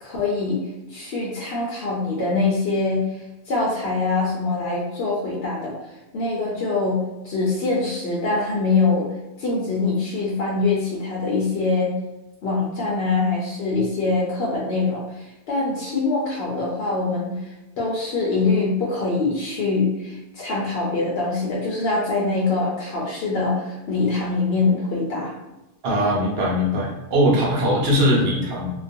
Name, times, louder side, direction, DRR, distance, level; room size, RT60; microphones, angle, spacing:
voice 1, 0.0-3.1 3.5-5.7 6.1-9.1 9.4-11.9 12.4-25.3, left 3 dB, 70° left, -4 dB, 0.8 m, -24 dB
voice 2, 25.8-28.7, equal, 70° right, -3 dB, 0.9 m, -20 dB
2.3 x 2.3 x 2.5 m, 0.99 s
omnidirectional pair, 1.1 m